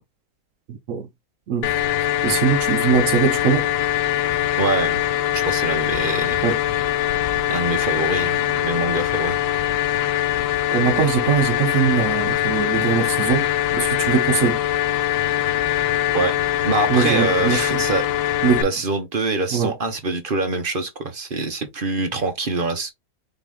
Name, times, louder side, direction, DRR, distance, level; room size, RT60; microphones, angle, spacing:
voice 1, 0.7-1.1 1.5-1.7 2.2-3.7 6.4-6.6 10.7-13.5 13.7-14.6 16.9-17.8 18.4-18.6 19.5-19.7, right 7 dB, 65° right, 0.9 m, -21 dB
sound 1, 1.6-18.6, left 12 dB, 80° left, 1.2 m, -22 dB
voice 2, 4.6-5.0 5.3-6.4 7.5-9.4 16.1-16.3 16.6-18.1 18.6-22.9, right 3 dB, 40° right, 0.9 m, -24 dB
5.4 x 2.9 x 3.4 m
omnidirectional pair, 1.8 m